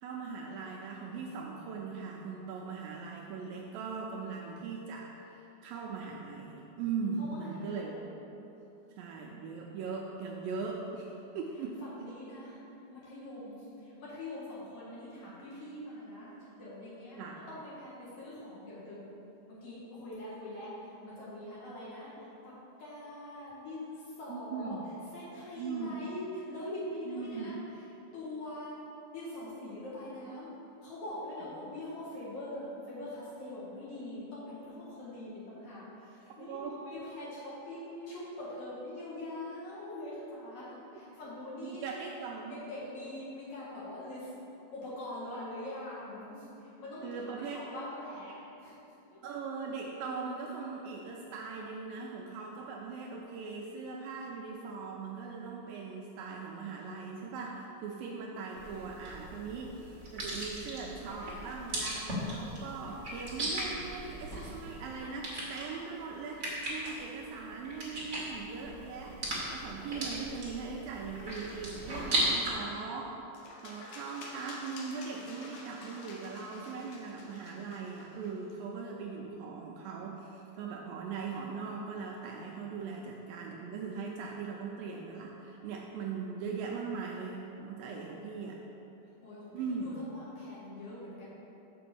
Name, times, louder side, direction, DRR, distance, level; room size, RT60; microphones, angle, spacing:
voice 1, 0.0-8.0 9.0-11.8 14.9-15.0 15.3-15.4 17.2-17.4 24.3-24.9 25.6-25.9 27.1-27.5 36.4-36.8 41.6-42.6 47.0-47.6 49.2-73.2 73.6-88.6 89.5-90.0, right 5 dB, 80° right, -1 dB, 2.1 m, -40 dB
voice 2, 7.2-8.0 11.8-12.6 12.9-17.2 17.5-19.0 19.5-22.1 22.4-22.5 22.8-24.8 25.1-27.8 28.1-28.8 29.1-30.5 30.8-41.8 42.5-44.3 44.7-48.7 49.1-49.2 89.2-91.3, left 1 dB, 55° left, -9 dB, 3.0 m, -43 dB
sound 1, 58.5-72.5, right 1 dB, 40° right, 1.0 m, -37 dB
sound 2, 73.3-78.5, left 2 dB, 75° left, 1.6 m, -50 dB
6.7 x 5.0 x 7.0 m, 3.0 s
omnidirectional pair, 4.4 m